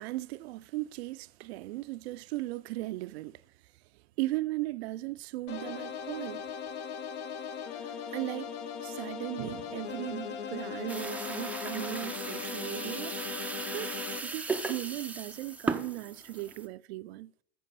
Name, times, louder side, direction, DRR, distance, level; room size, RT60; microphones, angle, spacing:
voice 1, 0.0-6.4 7.8-8.5 8.8-14.0 14.2-17.3, right 18 dB, 65° right, 0.4 m, -37 dB
sound 1, 5.5-14.2, left 7 dB, 65° left, 1.0 m, -39 dB
sound 2, 10.9-16.7, right 3 dB, 5° right, 0.4 m, -37 dB
14.0 x 5.0 x 4.1 m
hypercardioid pair, 95°, 35 cm